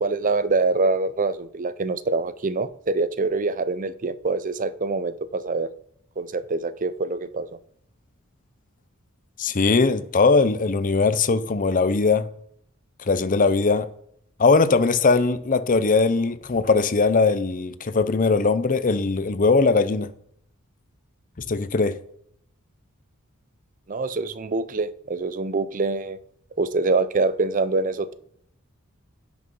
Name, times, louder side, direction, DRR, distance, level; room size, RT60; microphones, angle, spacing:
voice 1, 0.0-5.7 6.2-7.5 23.9-26.2 26.6-28.1, right 3 dB, 40° right, 0.5 m, -25 dB
voice 2, 9.4-12.3 13.1-13.9 14.4-20.1 21.5-22.0, left 4 dB, 40° left, 0.6 m, -20 dB
16.5 x 6.5 x 5.4 m
head